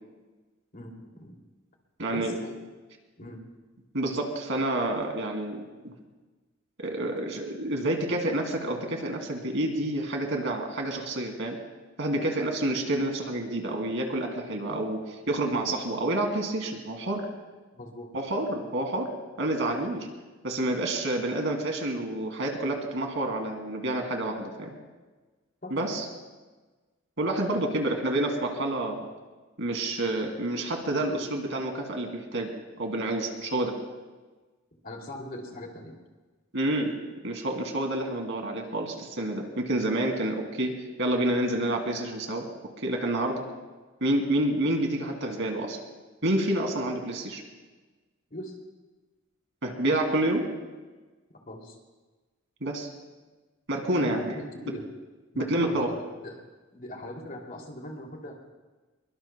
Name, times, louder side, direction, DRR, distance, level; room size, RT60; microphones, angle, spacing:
voice 1, 0.7-1.4 2.1-2.6 3.2-3.4 14.7-14.8 17.7-18.1 19.6-19.8 25.6-25.9 34.8-36.0 48.3-48.6 51.5-51.8 53.9-54.9 55.3-55.9 56.2-56.4 56.7-58.4, equal, 45° left, 1 dB, 2.8 m, -40 dB
voice 2, 2.0-2.3 3.9-5.9 6.8-11.6 12.0-15.0 15.3-17.3 18.1-19.1 19.4-20.0 20.4-24.7 25.7-26.0 27.2-29.1 29.6-32.5 32.8-33.8 36.5-37.0 37.2-42.5 42.8-43.4 44.0-45.8 46.2-47.4 49.6-50.5 52.6-52.9 53.7-54.3 55.4-55.9, right 1 dB, 65° right, 3 dB, 2.6 m, -28 dB
23.5 x 23.0 x 2.3 m, 1.3 s
head